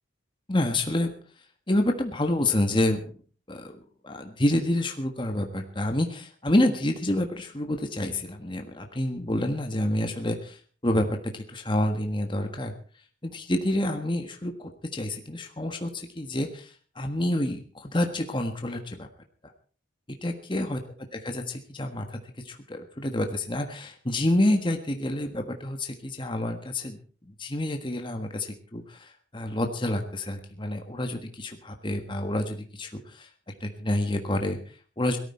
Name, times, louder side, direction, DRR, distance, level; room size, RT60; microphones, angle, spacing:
voice 1, 0.5-1.1 1.7-3.1 3.5-3.7 4.0-12.7 13.2-19.1 20.2-20.8 21.1-35.2, left 1 dB, 25° left, 4 dB, 1.5 m, -28 dB
18.0 x 13.5 x 4.4 m, 0.42 s
head